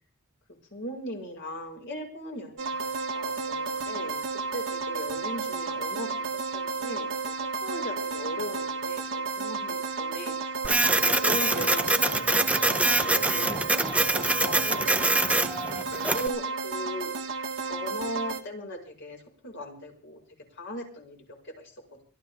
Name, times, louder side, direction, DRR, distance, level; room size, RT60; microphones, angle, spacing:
voice 1, 0.7-10.6 10.9-15.5 16.1-17.1 17.7-20.2 20.5-22.0, equal, 55° left, 1 dB, 5.3 m, -39 dB
sound 1, 2.6-18.4, right 4 dB, 65° right, 1.6 m, -32 dB
Printer, 10.6-16.3, right 2 dB, 5° right, 0.7 m, -25 dB
24.0 x 14.0 x 3.5 m, 0.41 s
head